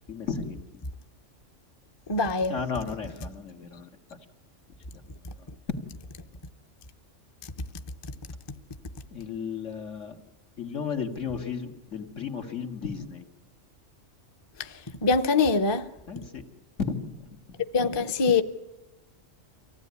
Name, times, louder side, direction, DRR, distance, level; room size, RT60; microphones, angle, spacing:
voice 1, 0.1-0.6 2.5-3.9 5.4-5.9 9.1-10.2 10.6-13.3 16.1-16.5 16.8-17.3, left 6 dB, 70° left, 2.2 m, -34 dB
voice 2, 2.1-2.5 14.6-15.9 17.7-18.4, left 4 dB, 25° left, 0.7 m, -24 dB
24.5 x 16.0 x 9.5 m
omnidirectional pair, 1.3 m